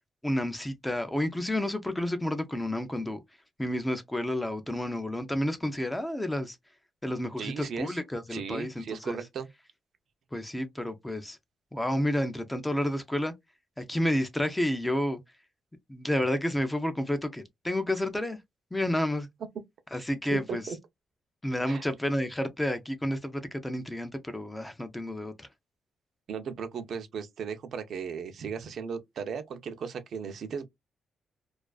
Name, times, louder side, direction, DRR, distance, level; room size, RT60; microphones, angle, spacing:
voice 1, 0.2-3.2 3.6-6.6 7.0-9.2 10.3-11.4 11.7-13.3 13.8-15.2 15.9-18.4 18.7-19.3 19.9-20.6 21.4-25.5, left 1 dB, 10° left, 0.4 m, -30 dB
voice 2, 7.4-8.0 8.3-9.5 19.9-20.8 21.7-21.8 26.3-30.6, right 6 dB, 60° right, 0.4 m, -36 dB
2.4 x 2.3 x 2.2 m
wide cardioid pair, 155°, 0 cm